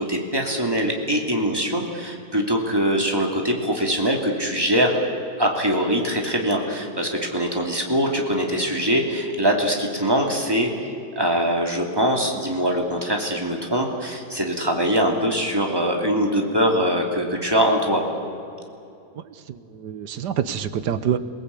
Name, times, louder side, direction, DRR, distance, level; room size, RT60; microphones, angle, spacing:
voice 1, 0.0-5.0 5.4-10.7 11.2-18.0, equal, 15° right, 1 dB, 2.8 m, -22 dB
voice 2, 19.3-21.2, right 9 dB, 85° right, 13 dB, 1.6 m, -27 dB
27.5 x 18.5 x 8.4 m, 2.6 s
omnidirectional pair, 1.7 m